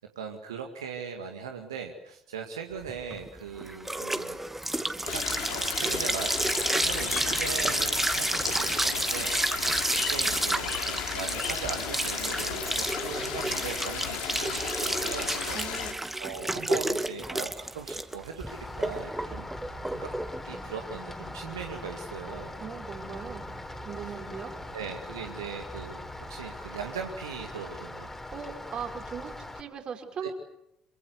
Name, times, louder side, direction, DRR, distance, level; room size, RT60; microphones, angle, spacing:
voice 1, 0.2-4.4 5.0-19.5 19.9-20.1 20.4-22.6 24.0-24.2 24.7-28.1 30.2-30.3, right 6 dB, 75° right, 3 dB, 2.1 m, -40 dB
sound 1, 2.9-21.9, right 1 dB, 10° right, 2.3 m, -30 dB
sound 2, 5.1-15.9, left 10 dB, 60° left, 3.4 m, -35 dB
voice 2, 15.5-16.0 22.6-23.5 23.8-24.5 28.3-30.3, right 7 dB, 40° right, 5 dB, 5.0 m, -39 dB
Rain, 18.5-29.6, left 1 dB, 15° left, 3.9 m, -41 dB
27.0 x 25.0 x 8.3 m, 0.81 s
figure-of-eight pair, 55°, 2 cm